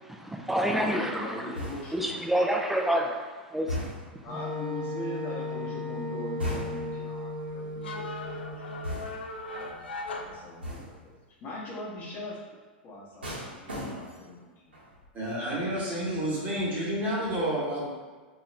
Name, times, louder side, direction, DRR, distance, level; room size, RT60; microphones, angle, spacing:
voice 1, 0.0-1.5 1.9-3.2 3.5-3.7, right 1 dB, 5° right, 2 dB, 0.3 m, -28 dB
voice 2, 0.7-2.3 4.2-8.1 8.5-8.6 10.1-11.1 11.4-12.4 12.8-14.8, left 1 dB, 35° left, -4 dB, 0.9 m, -40 dB
sound 1, 1.5-2.1 3.7-4.3 6.4-7.0 8.8-9.4 10.6-11.1 13.2-14.3 14.7-15.1, left 1 dB, 90° right, 0.8 m, -36 dB
Wind instrument woodwind instrument, 4.3-9.0, left 2 dB, 55° right, 0.8 m, -36 dB
sound 2, 6.7-11.1, left 2 dB, 80° left, 0.3 m, -39 dB
voice 3, 15.1-17.9, right 1 dB, 30° right, -6 dB, 1.1 m, -30 dB
2.4 x 2.3 x 3.1 m, 1.4 s
hypercardioid pair, 100°, 6 cm